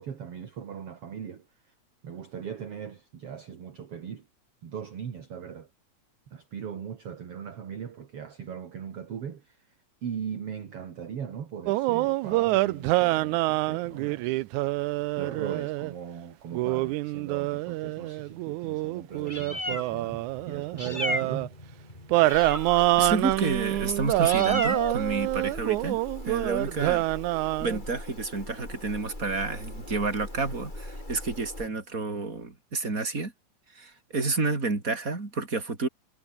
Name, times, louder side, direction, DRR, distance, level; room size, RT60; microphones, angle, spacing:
voice 1, 0.0-1.7 2.0-4.3 4.6-5.7 6.3-9.8 10.0-14.4 14.8-21.5, right 7 dB, 50° right, 2.9 m, -39 dB
sound 1, 11.7-15.9 16.5-21.5 22.1-27.8, right 19 dB, 80° right, 2.0 m, -26 dB
Meow, 19.1-31.7, left 1 dB, 15° left, 7.1 m, -37 dB
voice 2, 23.0-26.0 26.3-27.1 27.6-33.3 33.7-35.9, right 3 dB, 25° right, 4.4 m, -30 dB
omnidirectional pair, 3.6 m